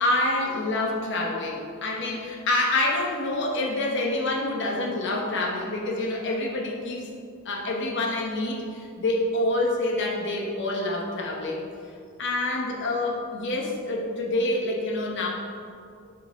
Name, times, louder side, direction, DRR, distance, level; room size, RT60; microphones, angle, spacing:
voice 1, 0.0-7.1 7.4-11.6 12.2-15.3, left 2 dB, 60° left, -1 dB, 1.0 m, -27 dB
7.5 x 4.8 x 3.6 m, 2.4 s
head